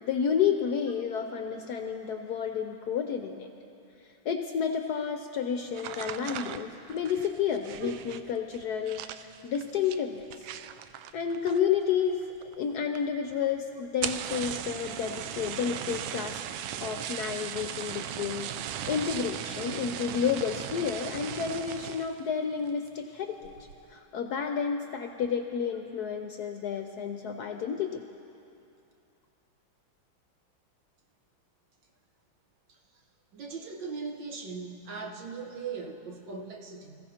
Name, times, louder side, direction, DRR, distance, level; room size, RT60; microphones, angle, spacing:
voice 1, 0.0-3.5 4.0-10.4 11.1-12.2 12.6-16.4 16.8-23.5 23.9-28.0, left 7 dB, 70° left, 5 dB, 1.0 m, -31 dB
sound 1, 5.7-11.9 12.1-12.7 13.0-13.1 13.3-13.4 13.9-22.2 22.6-23.0 23.4-23.8, right 10 dB, 80° right, 1.3 m, -38 dB
voice 2, 33.3-37.0, right 5 dB, 65° right, 1 dB, 1.8 m, -39 dB
26.5 x 15.0 x 2.9 m, 2.7 s
omnidirectional pair, 2.2 m